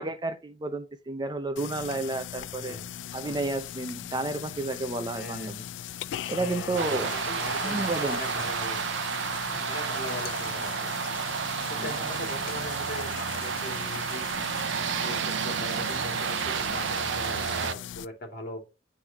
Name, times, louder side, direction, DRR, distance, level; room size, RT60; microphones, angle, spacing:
voice 1, 0.0-2.8 3.1-5.6 6.3-7.1 7.6-8.4 11.7-11.9, right 2 dB, 25° right, 0.5 m, -31 dB
sound 1, 1.6-18.1, left 10 dB, 80° left, 0.3 m, -39 dB
sound 2, 2.0-11.6, left 1 dB, 40° left, 4.5 m, -57 dB
voice 2, 5.1-5.6 6.4-8.8 9.7-10.9 11.7-14.5 15.0-18.6, left 1 dB, 55° left, 2.4 m, -40 dB
sound 3, 6.8-17.7, right 7 dB, 80° right, 0.5 m, -31 dB
9.7 x 4.0 x 2.9 m
head